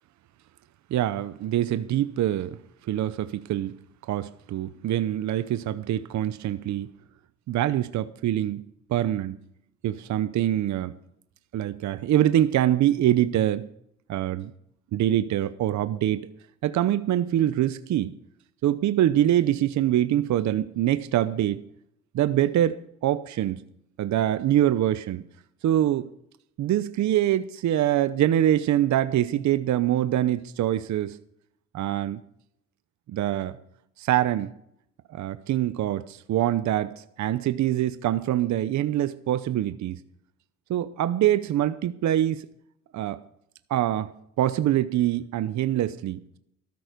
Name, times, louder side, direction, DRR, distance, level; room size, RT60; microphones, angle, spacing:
voice 1, 0.9-2.6 2.9-3.8 4.1-6.9 7.5-8.6 8.9-9.4 9.8-11.0 11.5-13.7 14.1-14.5 14.9-16.3 16.6-18.1 18.6-21.6 22.1-23.6 24.0-25.2 25.6-26.1 26.6-31.2 31.7-32.2 33.1-33.6 34.0-34.5 35.1-40.0 40.7-42.5 42.9-43.2 43.7-46.4, right 12 dB, 70° right, 0.8 m, -24 dB
14.0 x 13.0 x 5.1 m
cardioid pair, 90°, 30 cm